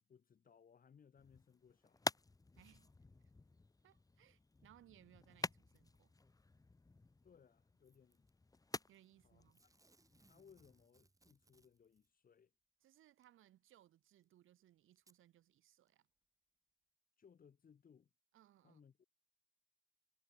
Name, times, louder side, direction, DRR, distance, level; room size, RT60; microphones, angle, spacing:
voice 1, 0.1-2.2 7.2-8.3 9.2-9.7 10.2-12.5 17.2-18.1 18.6-19.0, left 7 dB, 45° left, 6.1 m, -66 dB
sound 1, 1.2-10.9, left 3 dB, 15° left, 2.1 m, -49 dB
voice 2, 2.6-3.0 3.8-6.1 8.9-9.6 12.8-16.1 18.3-18.8, right 13 dB, 80° right, 7.9 m, -67 dB
Packing tape duct tape / Tearing, 7.8-8.3 9.5-12.1 13.2-13.3 14.2-14.3 15.0-15.2 15.9-16.0, right 2 dB, 15° right, 5.8 m, -73 dB
cardioid pair, 115°, 20 cm